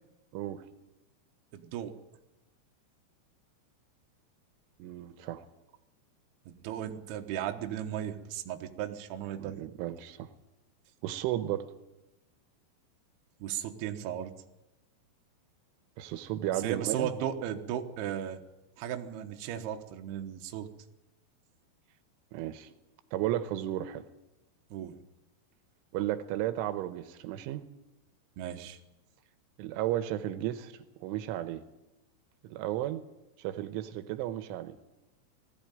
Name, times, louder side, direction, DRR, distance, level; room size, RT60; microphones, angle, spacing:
voice 1, 0.3-0.6 4.8-5.5 9.4-10.3 11.0-11.6 16.0-17.1 22.3-22.7 23.1-24.0 25.9-27.6 29.6-30.7 31.0-31.6 32.4-33.0 33.4-34.8, right 13 dB, 85° right, 11 dB, 3.3 m, -34 dB
voice 2, 1.5-1.9 6.5-9.6 13.4-14.3 16.6-18.4 18.8-20.7 24.7-25.0 28.4-28.8, right 10 dB, 70° right, 4 dB, 2.8 m, -36 dB
19.5 x 14.5 x 9.1 m, 1.0 s
omnidirectional pair, 5.6 m